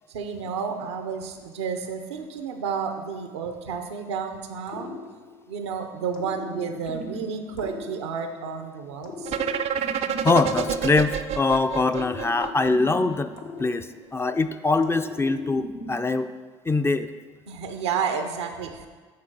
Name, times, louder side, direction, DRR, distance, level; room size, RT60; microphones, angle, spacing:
voice 1, 0.1-5.0 5.5-9.3 17.5-18.9, right 6 dB, 90° right, 6 dB, 0.7 m, -31 dB
sound 1, 4.7-5.7 6.1-8.5 9.0-11.4 11.9-14.3 14.8-16.3, left 3 dB, 70° left, 1.1 m, -39 dB
sound 2, 9.3-13.1, right 8 dB, 50° right, 0.5 m, -28 dB
voice 2, 10.2-13.3 13.6-13.9 14.1-16.3 16.6-17.1, left 3 dB, 20° left, 9 dB, 0.4 m, -23 dB
8.6 x 3.8 x 6.1 m, 1.4 s
hypercardioid pair, 65°, 14 cm